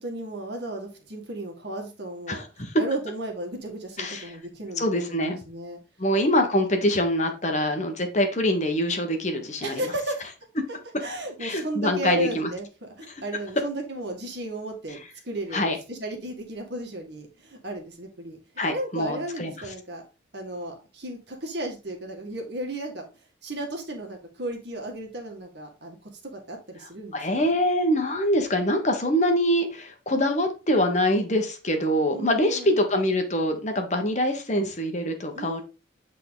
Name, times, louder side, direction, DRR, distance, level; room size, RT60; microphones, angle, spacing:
voice 1, 0.0-5.8 9.6-10.2 11.0-18.4 18.7-20.0 20.3-23.1 23.4-27.5 32.1-32.8 35.3-35.6, right 1 dB, 60° right, 1.8 m, -34 dB
voice 2, 2.3-2.7 4.0-4.2 4.8-5.4 6.0-9.8 11.4-12.5 15.5-15.8 18.6-19.5 27.1-35.6, equal, 40° left, 1.2 m, -24 dB
8.3 x 3.8 x 3.8 m
head